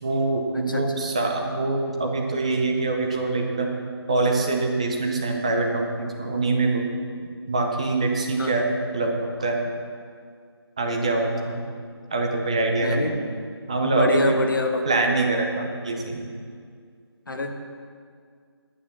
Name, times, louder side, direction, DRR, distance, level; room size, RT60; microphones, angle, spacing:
voice 1, 0.0-3.7 4.1-6.9 7.5-9.6 10.8-11.6 12.1-13.2 13.7-14.4 14.8-16.3, right 3 dB, 15° right, 2 dB, 0.6 m, -24 dB
voice 2, 12.8-13.1 13.8-14.9 17.3-17.5, left 2 dB, 50° left, 3 dB, 1.4 m, -26 dB
9.8 x 8.5 x 6.8 m, 2.1 s
figure-of-eight pair, 170°, 14 cm